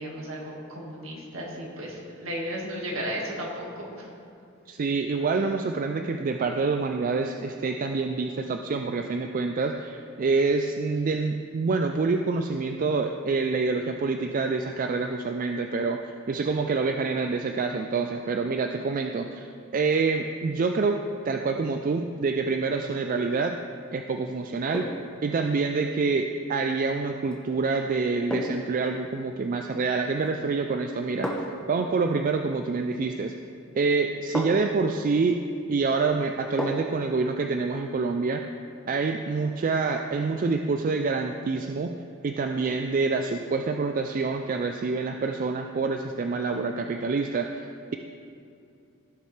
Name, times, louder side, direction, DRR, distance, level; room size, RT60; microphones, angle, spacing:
voice 1, 0.0-4.1, equal, 65° right, -2 dB, 1.8 m, -34 dB
voice 2, 4.7-16.0 16.3-23.6 23.9-24.9 25.2-31.3 31.7-33.4 33.8-35.4 35.7-38.4 38.9-41.9 42.2-48.0, right 4 dB, 40° right, 4 dB, 0.3 m, -27 dB
sound 1, 23.2-23.5 24.7-25.2 27.2-27.4 28.3-28.8 30.1-30.5 31.2-31.7 33.3-33.5 34.3-34.8 36.6-37.0 37.4-37.5, equal, 5° left, 0.9 m, -33 dB
16.0 x 6.6 x 3.2 m, 2.6 s
head